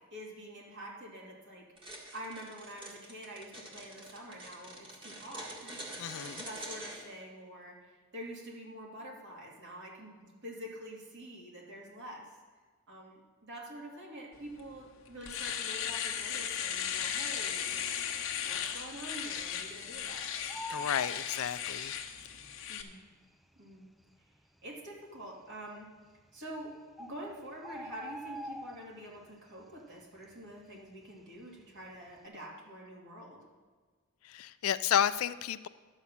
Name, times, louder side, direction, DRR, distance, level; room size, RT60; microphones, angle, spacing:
voice 1, 0.1-6.1 6.4-12.3 12.9-18.0 18.4-20.6 22.7-23.0 23.6-23.9 24.6-25.9 26.3-33.4, right 1 dB, 60° right, -2 dB, 2.6 m, -46 dB
sound 1, 1.8-7.0, right 1 dB, 25° right, 1.8 m, -45 dB
voice 2, 6.0-6.5 20.7-21.9 34.2-35.7, left 9 dB, 90° left, 14 dB, 0.4 m, -31 dB
Domestic sounds home sounds, 14.6-14.7 15.1-22.8, left 8 dB, 65° left, 1.0 m, -36 dB
Bird, 17.7-18.2 18.5-18.6 18.8-20.0 20.3-22.1 23.0-23.1 23.7-23.8 24.0-24.1 24.8-25.2 26.2-26.3 26.6-26.7 27.0-29.3 29.6-29.9 30.2-31.6 31.9-32.2, equal, ahead, 0.4 m, -45 dB
12.0 x 5.6 x 7.4 m, 1.4 s
head